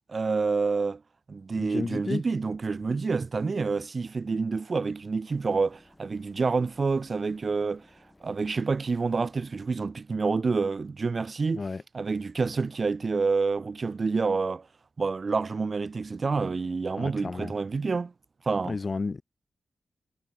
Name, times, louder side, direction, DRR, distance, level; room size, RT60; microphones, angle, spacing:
voice 1, 0.1-1.0 1.3-7.8 8.2-11.6 11.9-14.7 15.0-18.1 18.5-18.8, right 4 dB, 50° right, 0.8 m, -28 dB
voice 2, 1.5-2.2 11.5-11.8 17.0-17.5 18.6-19.2, left 4 dB, 45° left, 1.3 m, -32 dB
sound 1, 5.3-9.7, left 1 dB, 15° left, 5.4 m, -60 dB
cardioid pair, 65°, 0 cm